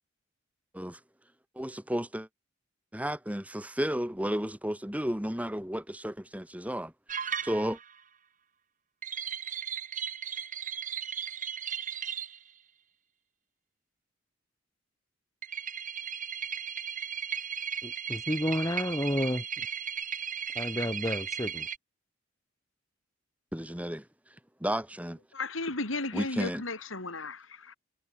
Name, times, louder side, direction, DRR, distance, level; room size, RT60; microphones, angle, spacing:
voice 1, 1.6-2.3 2.9-6.9 7.2-7.8 23.5-24.0 24.6-25.2 26.1-26.6, equal, 5° right, 3.4 m, -33 dB
sound 1, 7.1-7.9 9.0-12.4 15.4-21.8, right 8 dB, 40° right, 5.5 m, -36 dB
voice 2, 17.8-19.7 20.6-21.7, equal, 15° left, 3.7 m, -31 dB
voice 3, 25.3-27.7, left 3 dB, 85° left, 4.3 m, -35 dB
head